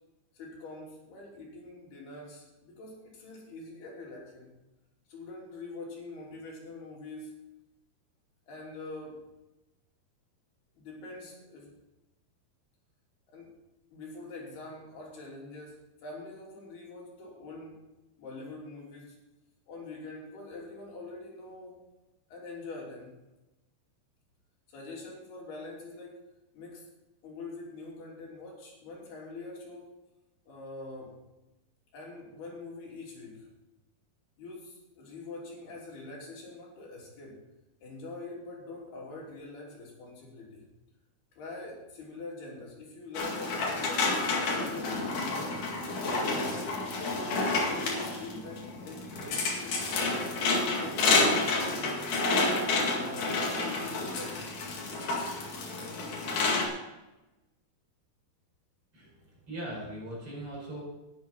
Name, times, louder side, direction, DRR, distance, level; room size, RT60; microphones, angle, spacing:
voice 1, 0.3-4.6 5.1-7.5 8.5-9.3 10.8-11.7 13.3-13.5 13.9-17.8 18.2-19.2 19.7-21.8 22.3-23.2 24.7-26.3 26.5-26.9 27.2-30.0 30.5-31.2 31.9-33.5 34.4-37.4 37.8-40.7 41.4-46.6 47.4-52.1 52.8-54.5, left 3 dB, 80° left, -3 dB, 5.2 m, -44 dB
sound 1, 43.1-56.7, left 3 dB, 55° left, 3.4 m, -29 dB
voice 2, 58.9-60.8, right 1 dB, 35° right, -4 dB, 6.2 m, -40 dB
13.0 x 10.5 x 4.5 m, 1.0 s
omnidirectional pair, 4.5 m